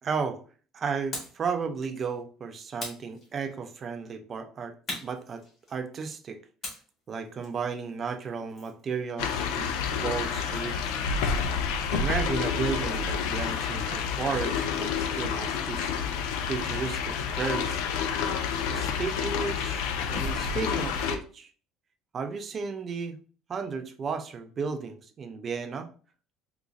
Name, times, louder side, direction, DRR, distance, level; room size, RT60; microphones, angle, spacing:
voice 1, 0.0-0.4 0.7-4.7 5.0-5.4 5.7-6.4 7.1-9.7 10.0-10.9 11.9-15.9 16.5-17.8 18.7-21.5 22.1-23.2 23.5-25.9, right 5 dB, 25° right, 7 dB, 0.4 m, -33 dB
sound 1, 1.1-1.5 2.8-3.7 4.9-6.0 6.6-8.8, left 2 dB, 35° left, 1.4 m, -41 dB
sound 2, 9.2-21.2, left 6 dB, 85° left, 0.4 m, -29 dB
3.9 x 2.9 x 2.4 m, 0.40 s
cardioid pair, 165°, 0 cm